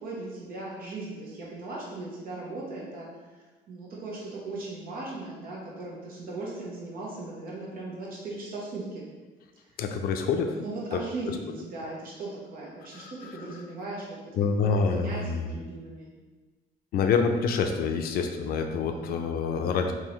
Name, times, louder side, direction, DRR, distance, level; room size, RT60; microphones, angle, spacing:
voice 1, 0.0-9.0 10.5-14.1 14.6-16.1 18.9-19.2, right 2 dB, 60° right, -4 dB, 1.2 m, -38 dB
voice 2, 9.8-10.6 10.9-11.0 11.3-11.4 12.9-13.5 14.3-15.5 16.9-19.9, left 5 dB, 60° left, 5 dB, 0.4 m, -27 dB
3.8 x 2.7 x 3.1 m, 1.3 s
cardioid pair, 110°, 17 cm